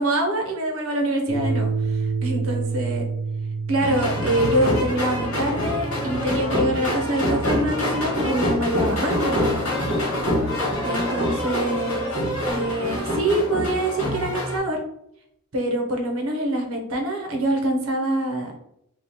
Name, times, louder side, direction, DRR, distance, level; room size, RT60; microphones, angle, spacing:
voice 1, 0.0-3.0 3.7-9.8 10.8-12.1 12.4-14.8 15.5-18.6, right 1 dB, 65° right, 2 dB, 0.8 m, -25 dB
sound 1, 1.3-8.4, right 4 dB, 20° left, 0.6 m, -30 dB
sound 2, 3.8-14.6, left 1 dB, 80° left, 1.3 m, -25 dB
sound 3, 8.2-12.6, right 2 dB, ahead, 1.0 m, -35 dB
2.9 x 2.4 x 3.8 m, 0.76 s
head